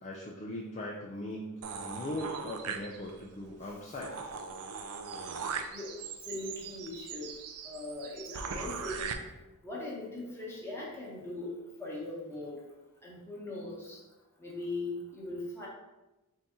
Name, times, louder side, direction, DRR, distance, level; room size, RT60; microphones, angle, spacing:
voice 1, 0.0-4.1, left 1 dB, 30° left, -2 dB, 0.4 m, -39 dB
sound 1, 1.6-3.3 3.7-3.8 4.0-9.1, right 5 dB, 80° right, 0.4 m, -40 dB
voice 2, 5.7-7.3 7.6-9.2 9.6-12.6 13.0-14.0 14.4-15.7, left 2 dB, 10° left, -5 dB, 1.0 m, -40 dB
4.0 x 2.7 x 3.5 m, 1.0 s
head